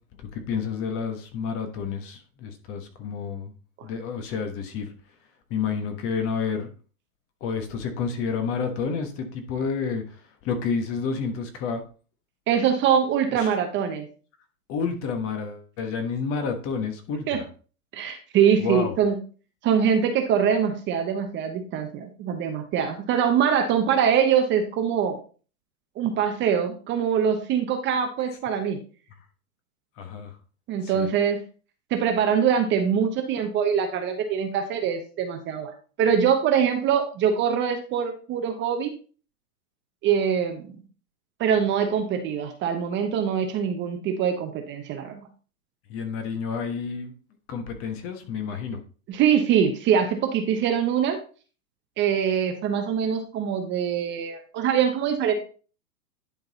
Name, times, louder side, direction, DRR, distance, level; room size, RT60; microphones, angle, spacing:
voice 1, 0.2-3.5 3.8-4.9 5.5-6.7 7.4-11.8 13.3-13.5 14.7-17.5 18.6-18.9 30.0-30.4 30.8-31.1 45.9-47.1 47.5-48.8, left 5 dB, 30° left, 7 dB, 1.3 m, -30 dB
voice 2, 12.5-14.1 17.3-17.4 17.9-19.2 19.6-25.2 26.0-28.8 30.7-31.4 31.9-35.7 36.0-38.9 40.0-40.8 41.4-45.2 49.1-51.2 52.0-55.3, right 8 dB, 25° right, 5 dB, 1.0 m, -23 dB
10.5 x 3.9 x 3.9 m, 0.38 s
hypercardioid pair, 130°, 46 cm